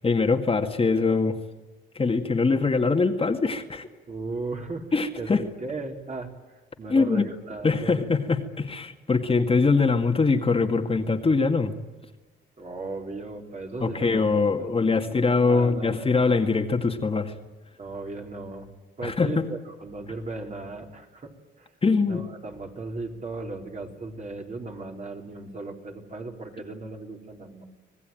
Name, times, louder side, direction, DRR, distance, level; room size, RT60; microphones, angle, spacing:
voice 1, 0.0-1.4 2.0-3.9 4.9-5.4 6.9-7.3 7.6-11.7 13.8-17.3 19.0-19.5 21.8-22.3, left 4 dB, 30° left, 4 dB, 2.1 m, -23 dB
voice 2, 4.1-4.9 5.2-8.0 12.6-16.2 17.8-18.7 19.0-21.7 22.0-27.6, right 3 dB, 40° right, 2 dB, 4.4 m, -37 dB
26.0 x 18.0 x 9.2 m, 1.2 s
cardioid pair, 90°, 20 cm